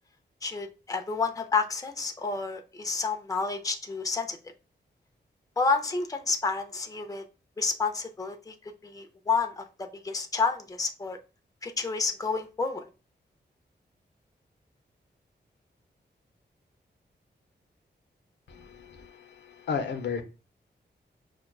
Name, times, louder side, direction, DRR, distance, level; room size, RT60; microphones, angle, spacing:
voice 1, 0.4-4.4 5.6-7.2 7.6-9.6 10.0-11.2 11.6-12.9, left 4 dB, 20° left, 5 dB, 0.5 m, -30 dB
voice 2, 18.5-19.1 19.7-20.2, left 6 dB, 80° left, 6 dB, 0.6 m, -32 dB
5.8 x 2.2 x 2.2 m, 0.33 s
wide cardioid pair, 90°, 18 cm